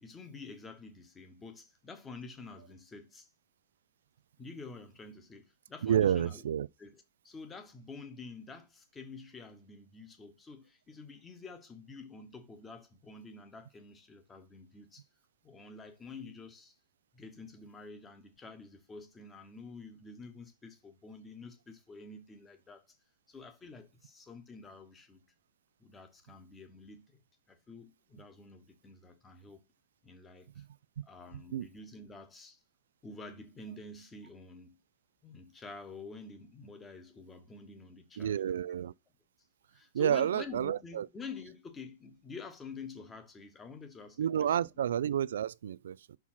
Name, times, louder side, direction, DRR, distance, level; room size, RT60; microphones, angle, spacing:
voice 1, 0.0-3.3 4.4-6.4 6.8-15.1 15.4-16.7 17.1-23.0 23.3-25.2 25.8-27.2 27.5-29.6 30.0-30.6 31.0-32.6 33.0-34.8 35.2-38.7 39.7-44.6, left 4 dB, 10° left, 1.0 m, -48 dB
voice 2, 5.8-6.7 30.6-30.7 31.5-31.7 38.2-38.9 39.9-41.1 44.2-46.2, right 9 dB, 85° right, 0.3 m, -30 dB
5.7 x 4.6 x 5.7 m
supercardioid pair, 175°, 0 cm